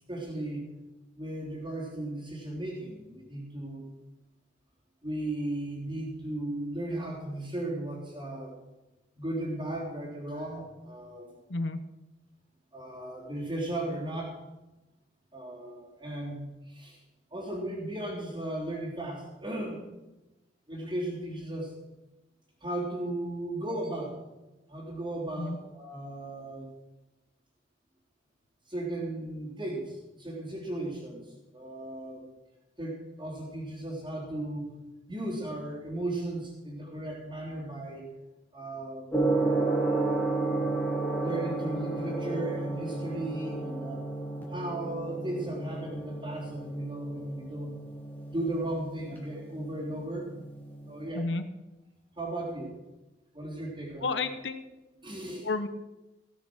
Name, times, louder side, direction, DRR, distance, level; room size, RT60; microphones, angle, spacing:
voice 1, 0.1-0.7 1.2-3.9 5.0-8.6 9.2-11.4 12.7-14.3 15.3-17.0 17.3-19.8 20.7-21.7 22.6-24.3 24.7-26.7 28.7-31.3 31.5-32.3 32.8-34.7 35.1-38.1 38.5-39.3 41.2-44.1 44.5-47.8 48.3-50.3 50.9-51.3 52.2-52.8 53.3-54.2 55.0-55.5, right 1 dB, 25° right, -5 dB, 3.6 m, -36 dB
Gong, 39.1-51.1, right 2 dB, 10° left, 2.4 m, -32 dB
voice 2, 54.0-54.6 55.4-55.7, left 3 dB, 75° left, 10 dB, 1.0 m, -31 dB
17.5 x 6.5 x 6.3 m, 1.0 s
head